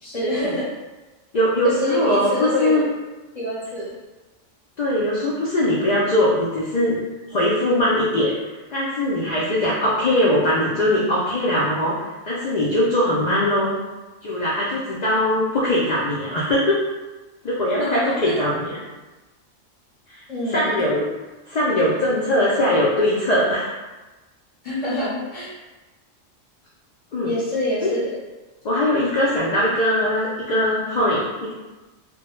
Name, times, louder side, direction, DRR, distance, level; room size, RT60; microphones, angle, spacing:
voice 1, 0.0-0.7 1.6-2.9 3.3-3.9 17.7-18.4 20.3-20.8 24.6-25.5 27.2-28.1, left 1 dB, 35° left, -8 dB, 0.7 m, -26 dB
voice 2, 1.3-2.8 4.8-7.0 7.3-8.3 8.7-13.7 14.2-16.8 17.4-18.8 20.1-21.0 21.5-23.8 27.1-27.3 27.8-27.9 28.6-31.5, left 1 dB, 85° left, -6 dB, 0.3 m, -21 dB
2.1 x 2.1 x 3.0 m, 1.1 s
omnidirectional pair, 1.3 m